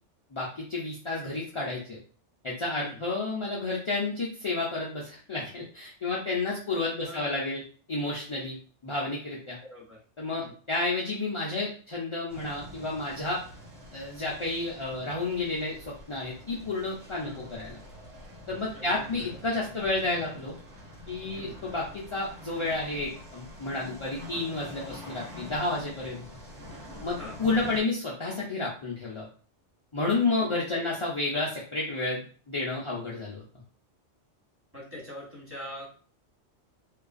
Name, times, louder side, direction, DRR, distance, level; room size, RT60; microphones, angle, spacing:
voice 1, 0.3-2.0 2.4-7.6 7.9-8.6 8.8-9.6 10.2-13.4 13.9-17.8 18.5-20.5 21.1-26.2 27.0-29.3 29.9-33.4, left 2 dB, 50° left, -5 dB, 0.3 m, -31 dB
voice 2, 7.0-7.4 9.6-10.0 10.4-10.5 17.2-17.4 18.7-19.4 21.3-21.6 27.2-27.3 30.3-30.9 34.7-35.9, left 1 dB, 10° right, -6 dB, 1.1 m, -43 dB
sound 1, 12.3-27.8, left 1 dB, 85° right, 1.3 m, -46 dB
2.6 x 2.3 x 2.4 m, 0.40 s
omnidirectional pair, 1.2 m